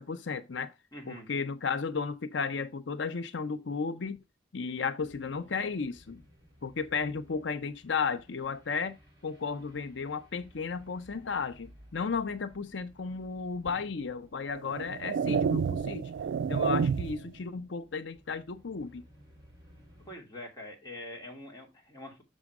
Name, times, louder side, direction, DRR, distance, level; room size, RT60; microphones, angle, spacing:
voice 1, 0.0-0.7 1.1-4.2 4.5-6.2 6.6-9.0 9.2-16.1 16.5-19.0, left 5 dB, 90° left, 0.6 m, -34 dB
voice 2, 0.9-1.3 20.1-22.2, left 1 dB, 20° left, 2.6 m, -44 dB
sound 1, 5.0-20.2, equal, 20° right, 4.5 m, -59 dB
sound 2, 13.7-13.8 14.6-17.3, right 6 dB, 85° right, 0.3 m, -29 dB
6.3 x 6.2 x 4.7 m
head